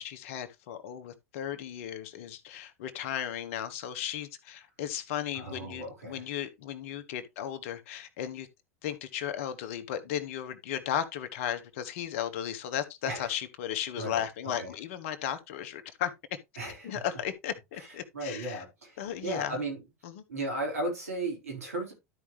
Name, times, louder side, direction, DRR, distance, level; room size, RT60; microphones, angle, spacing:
voice 1, 0.0-8.5 8.8-16.1 16.8-18.6 19.0-19.6 20.0-20.2, left 10 dB, 65° left, 1.3 m, -35 dB
voice 2, 5.3-6.2 13.1-13.3 14.0-14.7 16.6-16.9 17.8-17.9 18.1-19.8 20.3-21.9, right 2 dB, 85° right, 4.1 m, -36 dB
12.5 x 5.0 x 3.1 m
hypercardioid pair, 85°, 8 cm